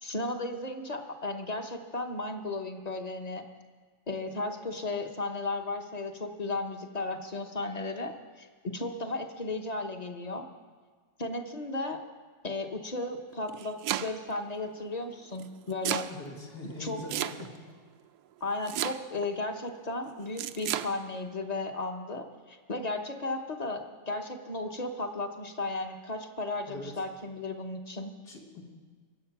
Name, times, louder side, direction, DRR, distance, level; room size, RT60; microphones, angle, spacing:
voice 1, 0.0-3.4 4.1-10.5 11.2-12.0 12.4-16.1 16.8-17.0 18.4-28.1, left 2 dB, 30° left, 5 dB, 0.9 m, -35 dB
Domestic sounds home sounds, 13.3-14.4 15.4-16.1 17.1-17.7 18.7-19.3 20.4-20.9, right 12 dB, 80° right, 1.1 m, -32 dB
voice 2, 16.1-17.5 26.7-27.0 28.2-28.6, left 2 dB, 85° left, -2 dB, 2.8 m, -42 dB
23.0 x 7.9 x 5.9 m, 1.5 s
omnidirectional pair, 1.7 m